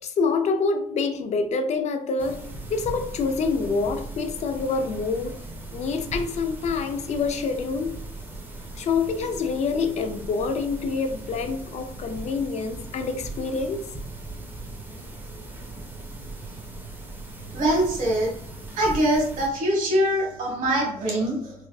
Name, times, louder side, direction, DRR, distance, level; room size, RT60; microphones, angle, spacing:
voice 1, 0.0-5.4 5.7-7.9 8.8-13.8, left 4 dB, 50° left, 7 dB, 0.4 m, -26 dB
sound 1, 2.2-19.5, right 2 dB, 15° right, 0.6 m, -38 dB
voice 2, 17.5-18.4 18.7-21.5, right 1 dB, 65° right, -2 dB, 1.4 m, -23 dB
3.4 x 2.4 x 2.3 m, 0.68 s
cardioid pair, 115°, 14 cm